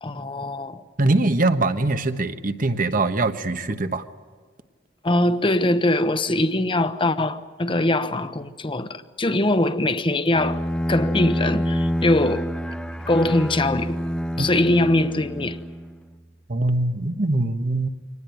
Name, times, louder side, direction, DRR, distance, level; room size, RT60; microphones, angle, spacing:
voice 1, 0.0-0.8 5.0-10.6 10.9-12.5 13.1-14.0 14.4-15.6, left 1 dB, 30° left, 1.0 m, -22 dB
voice 2, 1.0-4.0 14.4-14.5 16.5-17.9, right 2 dB, 50° right, 1.2 m, -22 dB
Bowed string instrument, 10.3-16.1, equal, 5° left, 0.7 m, -27 dB
24.5 x 19.5 x 9.3 m
head